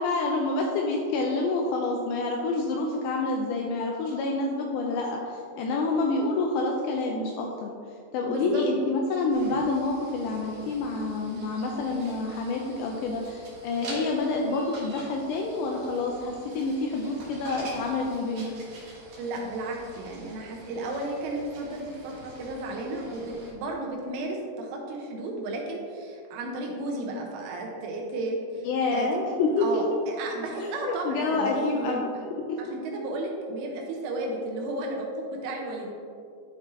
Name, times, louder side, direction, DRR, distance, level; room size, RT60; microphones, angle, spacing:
voice 1, 0.0-7.7 8.1-18.6 28.6-29.8 30.6-32.1 32.5-32.6, left 3 dB, 85° left, 0 dB, 2.5 m, -28 dB
voice 2, 8.3-8.6 19.2-29.1 29.6-29.9 30.2-32.2 32.6-35.9, right 2 dB, 80° right, 0 dB, 3.4 m, -33 dB
sound 1, 9.3-23.5, right 1 dB, 55° right, 2.4 m, -46 dB
12.0 x 5.0 x 3.2 m, 2.3 s
omnidirectional pair, 5.7 m